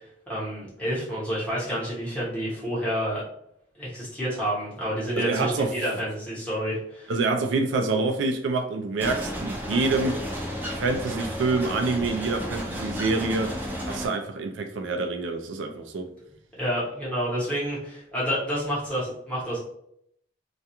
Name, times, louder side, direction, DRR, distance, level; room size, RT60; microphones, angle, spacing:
voice 1, 0.0-3.2 3.7-7.1 16.6-19.6, equal, 5° left, 1.0 m, -29 dB
voice 2, 5.1-5.7 7.1-10.2 10.8-13.6 13.9-16.1, right 3 dB, 85° right, 0.4 m, -26 dB
sound 1, 9.0-14.1, equal, 10° right, 0.4 m, -32 dB
2.4 x 2.2 x 2.8 m
head